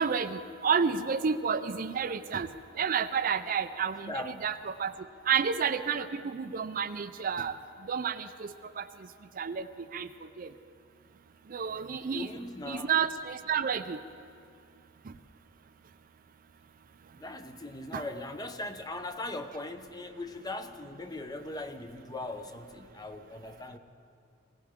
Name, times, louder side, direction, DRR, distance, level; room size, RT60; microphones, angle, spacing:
voice 1, 0.0-2.5 2.8-4.9 5.3-7.6 7.9-8.8 9.4-9.6 9.9-10.1 10.4-10.5 11.5-12.3 12.7-14.0 17.9-18.0, right 6 dB, 40° right, 11 dB, 0.4 m, -30 dB
voice 2, 11.7-12.9 17.1-23.8, left 2 dB, 20° left, 8 dB, 0.6 m, -40 dB
21.5 x 17.5 x 3.6 m, 2.5 s
head